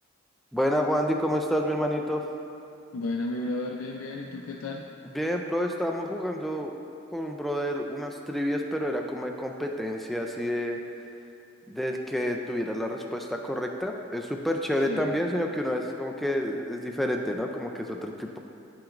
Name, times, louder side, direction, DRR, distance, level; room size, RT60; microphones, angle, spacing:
voice 1, 0.5-2.2 5.1-6.7 7.1-10.8 11.7-18.4, equal, ahead, 2 dB, 0.3 m, -29 dB
voice 2, 2.9-4.9 14.9-15.1, left 2 dB, 85° left, -1 dB, 0.4 m, -33 dB
8.9 x 5.9 x 2.5 m, 2.8 s
head